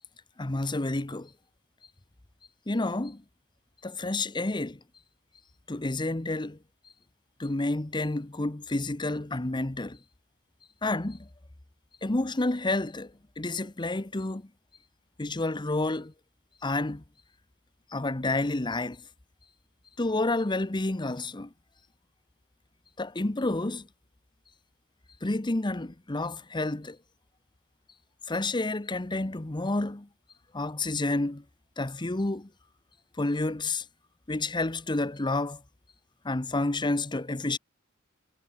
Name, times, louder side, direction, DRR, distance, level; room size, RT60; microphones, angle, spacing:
voice 1, 0.4-1.3 2.7-3.2 3.8-4.8 5.7-6.6 7.4-10.0 10.8-11.3 12.0-14.4 15.2-16.1 16.6-17.0 17.9-19.0 20.0-21.5 23.0-23.9 25.2-27.0 28.3-30.1 30.5-31.4 31.8-32.5 33.2-33.8 34.3-35.6 36.2-37.6, left 2 dB, 25° left, 0.9 m, -29 dB
head